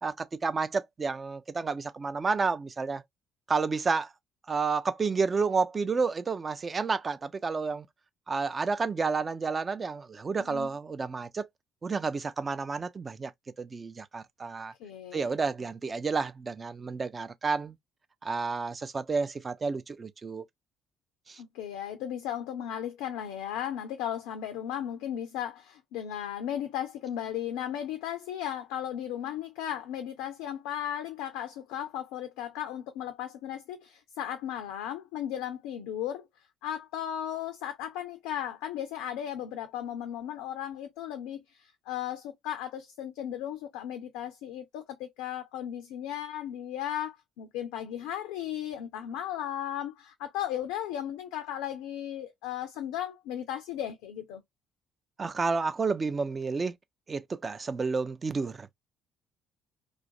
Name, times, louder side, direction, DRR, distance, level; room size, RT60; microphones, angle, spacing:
voice 1, 0.0-3.0 3.5-4.1 4.5-7.9 8.3-11.5 11.8-13.3 13.6-14.7 15.1-17.8 18.2-20.4 21.3-21.4 55.2-56.7 57.1-58.7, right 4 dB, 30° right, 0.4 m, -30 dB
voice 2, 10.4-10.7 14.8-15.3 21.4-36.3 36.6-54.4, left 10 dB, 65° left, 0.3 m, -36 dB
2.4 x 2.1 x 2.6 m
figure-of-eight pair, 50°, 0 cm